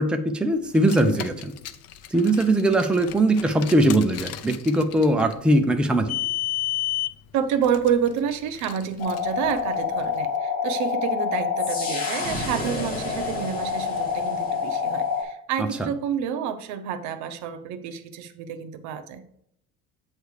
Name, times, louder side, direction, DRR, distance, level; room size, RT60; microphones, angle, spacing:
voice 1, 0.0-1.5 2.1-6.1, right 1 dB, 5° right, 5 dB, 0.5 m, -21 dB
Car, 0.7-10.2, left 13 dB, 55° left, 0.6 m, -34 dB
voice 2, 7.3-19.2, right 8 dB, 70° right, 10 dB, 0.8 m, -28 dB
sound 1, 9.0-15.2, left 5 dB, 30° left, 2.4 m, -27 dB
8.2 x 3.3 x 6.5 m, 0.73 s
cardioid pair, 140°, 30 cm